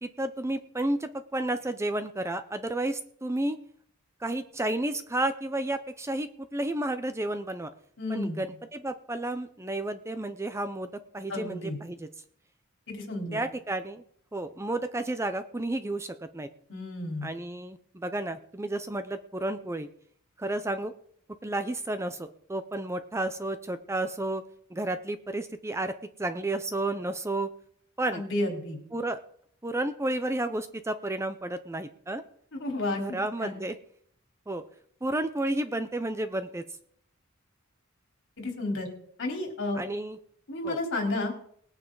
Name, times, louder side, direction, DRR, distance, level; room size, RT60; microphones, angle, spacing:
voice 1, 0.0-3.6 4.2-7.7 8.1-12.1 13.3-14.0 14.3-16.5 17.2-19.9 20.4-20.9 21.4-24.4 24.7-25.9 26.2-27.5 28.0-28.2 28.9-29.2 29.6-32.2 33.0-33.8 34.5-34.6 35.0-36.6 39.7-40.2 40.6-40.8, right 1 dB, 15° right, 10 dB, 0.6 m, -31 dB
voice 2, 8.0-8.4 11.3-11.8 12.9-13.4 16.7-17.3 28.1-28.8 32.5-33.6 38.4-38.9 39.2-39.8 40.5-41.3, left 2 dB, 60° left, 1 dB, 3.8 m, -32 dB
19.5 x 9.3 x 3.9 m, 0.63 s
head